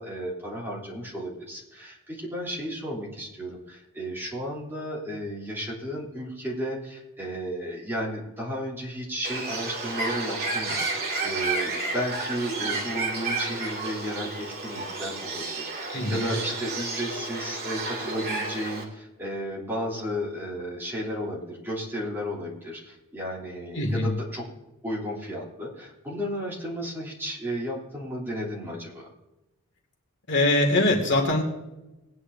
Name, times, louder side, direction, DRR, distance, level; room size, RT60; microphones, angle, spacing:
voice 1, 0.0-24.5 24.8-29.1, equal, 10° right, -5 dB, 3.3 m, -33 dB
Bird, 9.2-18.8, right 3 dB, 45° right, 2.5 m, -31 dB
voice 2, 15.9-16.3 23.7-24.1 30.3-31.4, left 2 dB, 55° left, 1 dB, 2.3 m, -23 dB
20.0 x 9.8 x 2.7 m, 1.0 s
head